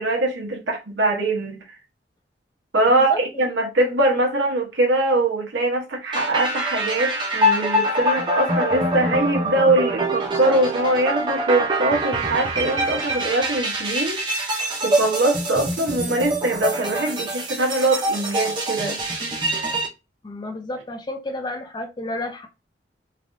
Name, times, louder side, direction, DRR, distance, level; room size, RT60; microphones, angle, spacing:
voice 1, 0.0-1.8 2.7-19.0, right 2 dB, 75° right, 0.9 m, -22 dB
voice 2, 2.9-3.2 20.2-22.5, left 1 dB, 25° left, 0.4 m, -31 dB
sound 1, 6.1-19.9, right 1 dB, 25° right, 0.6 m, -24 dB
3.2 x 2.4 x 2.5 m
head